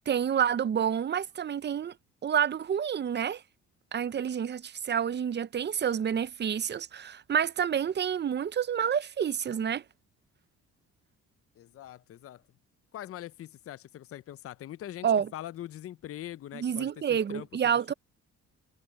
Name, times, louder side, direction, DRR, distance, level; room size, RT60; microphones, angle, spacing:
voice 1, 0.1-1.9 2.2-3.4 3.9-9.8 15.0-15.3 16.5-17.9, right 8 dB, 35° right, 0.6 m, -28 dB
voice 2, 11.6-12.4 12.9-15.1 15.3-17.5, left 12 dB, 50° left, 0.5 m, -42 dB
cardioid pair, 90°, 30 cm